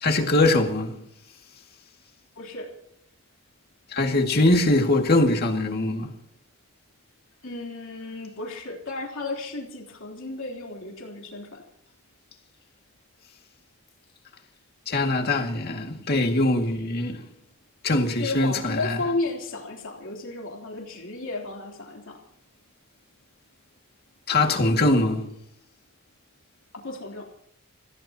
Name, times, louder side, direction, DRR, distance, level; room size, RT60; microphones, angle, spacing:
voice 1, 0.0-1.0 3.9-6.1 14.9-17.3 17.8-19.0 24.3-25.2, left 2 dB, 45° left, 2.1 m, -22 dB
voice 2, 2.4-2.7 7.4-11.6 18.1-22.2 26.8-27.2, left 2 dB, 60° left, 3.6 m, -33 dB
30.0 x 16.0 x 2.9 m
head